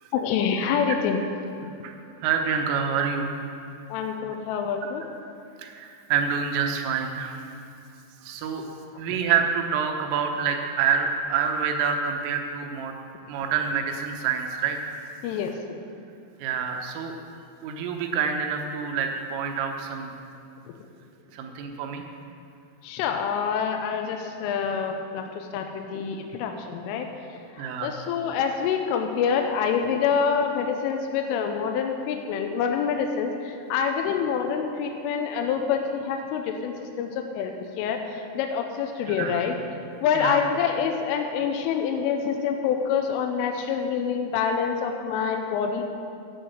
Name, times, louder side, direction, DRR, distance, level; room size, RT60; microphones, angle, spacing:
voice 1, 0.1-1.2 3.9-5.0 15.2-15.8 22.8-27.1 27.6-39.6 40.0-45.8, left 7 dB, 85° left, 4 dB, 3.3 m, -26 dB
voice 2, 2.2-3.3 5.6-7.4 8.2-8.6 9.0-12.9 13.3-14.8 16.4-17.1 17.6-20.2 21.3-22.0 27.6-27.9 39.1-39.4 40.1-40.4, right 6 dB, 85° right, 3 dB, 3.7 m, -27 dB
11.0 x 8.3 x 7.9 m, 2.5 s
omnidirectional pair, 5.7 m